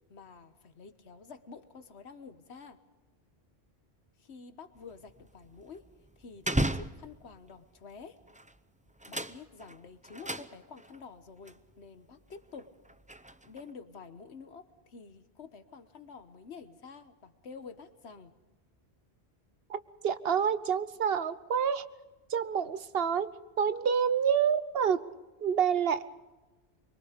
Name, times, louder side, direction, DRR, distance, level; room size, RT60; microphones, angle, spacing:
voice 1, 0.1-2.8 4.2-5.9 6.2-8.2 9.1-12.7 13.4-18.3, left 5 dB, 75° left, 10 dB, 1.5 m, -49 dB
sound 1, 4.8-7.5 8.2-8.6 8.9-11.0 11.5-11.6 12.2-13.7, right 1 dB, 10° right, 0.4 m, -36 dB
voice 2, 20.0-21.8 22.3-23.3 23.6-25.1 25.4-26.0, right 7 dB, 65° right, 14 dB, 1.0 m, -28 dB
25.0 x 23.0 x 5.1 m, 1.2 s
omnidirectional pair, 1.1 m